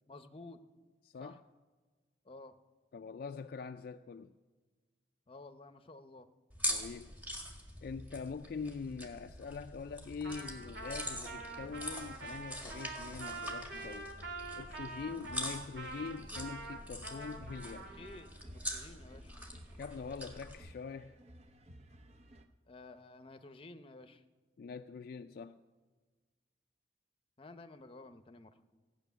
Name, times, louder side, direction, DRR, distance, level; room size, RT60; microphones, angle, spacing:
voice 1, 0.1-0.6 1.2-1.4 2.2-2.6 5.3-6.3 17.8-19.3 22.7-24.2 27.4-28.5, left 2 dB, 30° left, 0.7 m, -52 dB
voice 2, 1.0-1.4 2.9-4.3 6.7-7.1 7.8-14.1 14.6-17.9 19.8-21.2 24.6-25.6, left 5 dB, 55° left, 0.3 m, -44 dB
sound 1, 6.5-20.6, equal, 10° right, 1.7 m, -44 dB
Trumpet, 10.2-18.2, right 3 dB, 85° right, 2.0 m, -45 dB
sound 2, 11.4-22.4, right 1 dB, 40° right, 0.7 m, -57 dB
16.0 x 6.4 x 9.2 m
head